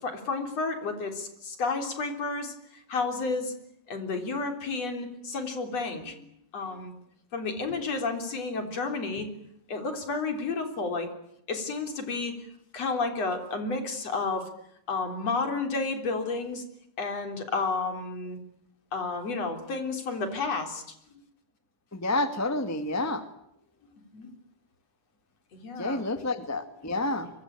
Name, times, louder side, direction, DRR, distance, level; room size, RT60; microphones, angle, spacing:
voice 1, 0.0-3.5 3.9-6.3 6.5-6.9 7.3-9.3 9.7-11.1 11.5-12.5 12.7-14.5 14.9-16.6 17.0-18.4 18.9-20.8 24.1-24.3 25.5-26.0, left 3 dB, 50° left, 6 dB, 4.5 m, -31 dB
voice 2, 21.9-23.2 25.8-27.3, left 2 dB, 10° left, 9 dB, 0.8 m, -29 dB
24.5 x 23.5 x 9.0 m, 0.75 s
omnidirectional pair, 3.9 m